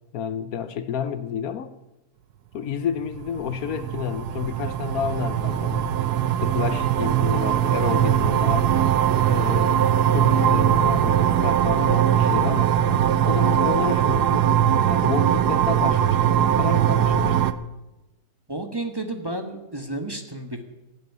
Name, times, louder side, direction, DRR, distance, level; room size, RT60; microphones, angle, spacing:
voice 1, 0.1-1.7 2.5-6.0 6.4-8.7 9.2-9.8 10.1-12.7 13.2-14.6 14.8-17.4, left 8 dB, 70° left, 1.1 m, -30 dB
sound 1, 3.1-17.5, right 10 dB, 85° right, 1.3 m, -21 dB
voice 2, 18.5-20.6, right 2 dB, 15° right, 1.3 m, -31 dB
16.5 x 8.3 x 9.3 m
omnidirectional pair, 1.7 m